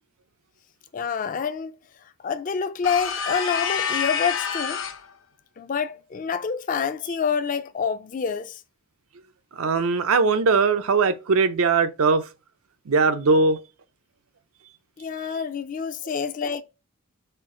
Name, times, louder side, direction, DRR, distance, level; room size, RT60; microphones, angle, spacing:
voice 1, 0.9-1.8 2.2-4.8 5.6-8.6 15.0-16.6, left 6 dB, 40° left, 0.3 m, -27 dB
sound 1, 2.8-5.1, left 6 dB, 70° left, 0.8 m, -27 dB
voice 2, 9.5-12.2 12.9-13.6, right 4 dB, 85° right, 0.5 m, -20 dB
4.4 x 2.4 x 4.7 m
head